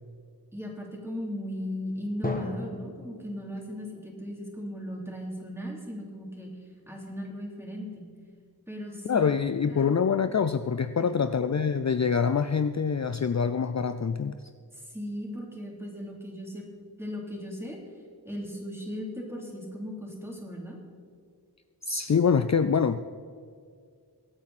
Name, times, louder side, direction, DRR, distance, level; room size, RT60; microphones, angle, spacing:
voice 1, 0.5-6.5 6.9-8.0 8.7-9.3 9.7-9.9 11.0-11.3 14.7-16.7 17.0-17.8 18.2-20.8, equal, 5° right, -2 dB, 3.4 m, -37 dB
Drum, 2.2-5.9, left 1 dB, 20° left, 1.3 m, -39 dB
voice 2, 9.0-14.4 21.8-23.1, left 6 dB, 45° left, 11 dB, 0.4 m, -25 dB
23.0 x 8.7 x 4.2 m, 2.1 s
wide cardioid pair, 50°, 40 cm